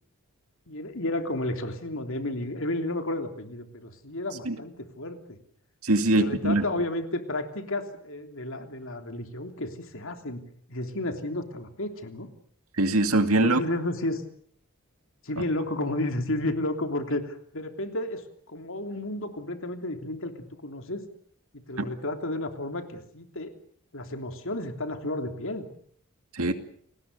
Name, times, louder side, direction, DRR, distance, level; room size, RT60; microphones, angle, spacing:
voice 1, 0.7-5.4 6.0-10.4 10.7-12.3 13.4-14.2 15.2-20.3 20.6-21.0 21.7-23.5 23.9-25.7, left 1 dB, 60° left, 6 dB, 3.3 m, -32 dB
voice 2, 5.8-6.6 12.8-13.6 21.8-21.9 26.3-26.5, right 2 dB, 75° right, 8 dB, 2.4 m, -22 dB
29.5 x 20.0 x 6.8 m, 0.62 s
head